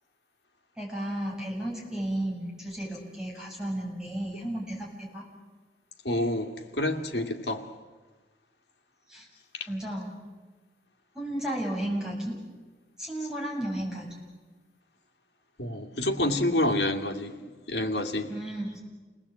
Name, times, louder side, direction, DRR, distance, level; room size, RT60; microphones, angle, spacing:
voice 1, 0.8-5.2 9.1-9.3 9.7-10.1 11.1-12.4 13.0-14.1 18.3-18.8, right 1 dB, 5° right, -3 dB, 7.3 m, -33 dB
voice 2, 6.0-7.7 9.5-9.7 15.6-17.4 17.7-18.3, left 1 dB, 70° left, 5 dB, 2.4 m, -28 dB
29.0 x 19.5 x 8.6 m, 1.3 s
head